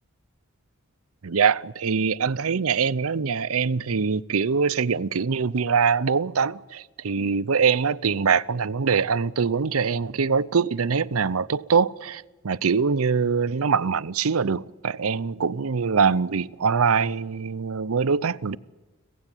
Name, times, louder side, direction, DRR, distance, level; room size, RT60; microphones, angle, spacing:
voice 1, 1.2-18.6, right 5 dB, 85° right, 0.7 m, -23 dB
26.0 x 16.5 x 9.1 m
head